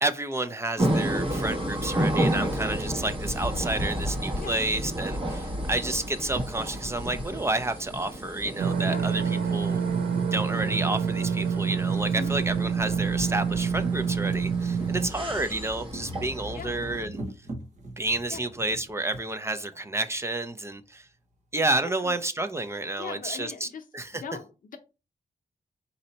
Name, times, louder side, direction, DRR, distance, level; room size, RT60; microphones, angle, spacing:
voice 1, 0.0-9.8 10.3-17.2 18.0-21.1 21.5-23.7 23.9-24.2, right 2 dB, 20° right, 0.4 m, -30 dB
sound 1, 0.8-17.1, right 1 dB, 35° right, 1.2 m, -32 dB
sound 2, 8.6-15.1, right 6 dB, 85° right, 0.6 m, -27 dB
sound 3, 9.7-9.8 10.8-10.9 11.3-11.4 11.7-19.3 20.2-20.3 20.5-20.6, right 1 dB, 55° right, 1.0 m, -43 dB
voice 2, 23.0-23.8 24.1-24.8, left 6 dB, 65° left, 0.7 m, -39 dB
4.2 x 2.7 x 4.0 m
wide cardioid pair, 140°, 15 cm